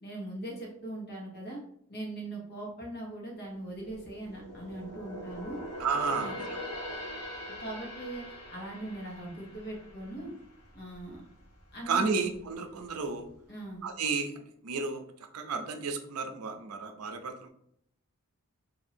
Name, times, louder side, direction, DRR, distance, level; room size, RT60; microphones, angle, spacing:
voice 1, 0.0-1.6 1.9-5.6 6.1-6.4 7.6-10.3 10.7-11.2 11.7-12.2 13.5-13.8, right 1 dB, 45° left, -2 dB, 1.2 m, -40 dB
sound 1, 3.5-11.1 11.4-11.7 12.2-12.9 13.3-13.4, equal, 75° left, 1.0 m, -42 dB
voice 2, 5.8-6.6 11.9-13.3 13.8-14.3 14.6-15.0 15.3-17.5, right 5 dB, 80° right, 6 dB, 0.5 m, -32 dB
2.7 x 2.7 x 4.2 m, 0.71 s
head